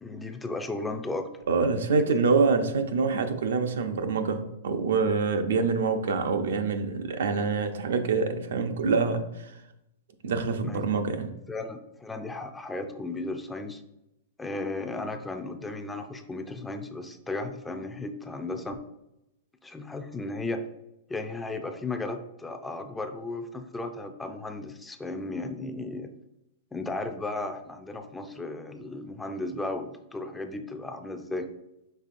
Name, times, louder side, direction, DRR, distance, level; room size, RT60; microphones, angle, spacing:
voice 1, 0.0-1.3 2.1-2.3 10.6-10.8 11.5-13.8 14.4-18.8 19.6-20.6 21.1-26.1 26.7-31.5, left 2 dB, 10° left, 6 dB, 0.3 m, -35 dB
voice 2, 1.5-9.3 10.2-11.3, right 4 dB, 85° right, 7 dB, 0.5 m, -25 dB
5.4 x 3.6 x 2.5 m, 0.87 s
hypercardioid pair, 145°, 0 cm